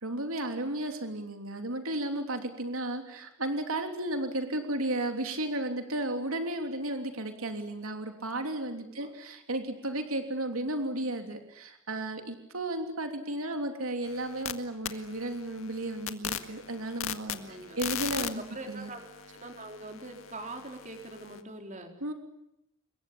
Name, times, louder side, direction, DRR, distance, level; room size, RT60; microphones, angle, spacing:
voice 1, 0.0-18.4 18.7-18.9 22.0-22.1, right 1 dB, 80° right, 5 dB, 3.2 m, -34 dB
voice 2, 8.6-9.1 17.3-19.0 19.3-21.9, right 2 dB, 35° right, 4 dB, 4.2 m, -44 dB
sound 1, 14.0-14.5 14.8-21.4, left 9 dB, 75° left, 1.9 m, -39 dB
27.0 x 23.0 x 8.7 m, 0.83 s
head